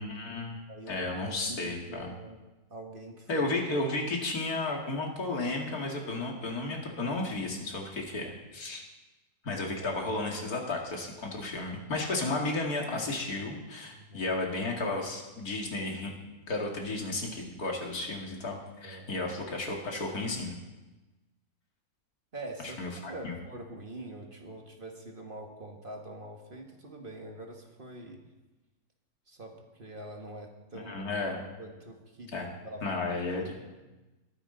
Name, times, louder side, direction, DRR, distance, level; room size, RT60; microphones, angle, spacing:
voice 1, 0.0-2.1 3.3-8.8 9.4-16.1 16.5-20.5 22.8-23.3 30.9-31.4 32.3-32.5 32.8-33.5, left 2 dB, 90° left, 0 dB, 2.6 m, -33 dB
voice 2, 1.2-2.4 2.7-3.5 9.8-9.9 13.9-14.3 18.8-19.1 22.3-22.8 23.1-28.2 29.3-31.1 31.6-32.8 33.4-33.8, right 2 dB, 35° right, 2 dB, 1.6 m, -44 dB
21.0 x 10.0 x 3.9 m, 1.1 s
omnidirectional pair, 1.5 m